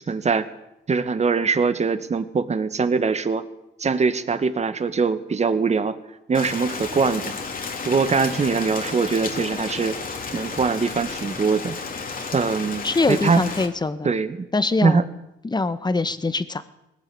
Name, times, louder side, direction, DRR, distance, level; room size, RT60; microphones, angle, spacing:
voice 1, 0.1-0.5 0.9-3.5 3.8-6.0 6.3-7.3 7.8-10.0 10.3-11.8 12.3-13.4 14.0-14.5 14.8-15.1, right 5 dB, 35° right, 11 dB, 1.9 m, -22 dB
Rain, 6.3-13.7, left 4 dB, 45° left, 3.3 m, -32 dB
voice 2, 12.8-14.1 14.5-15.0 15.4-16.6, left 3 dB, 20° left, 12 dB, 1.6 m, -23 dB
20.5 x 18.0 x 8.8 m, 0.89 s
cardioid pair, 90°, 20 cm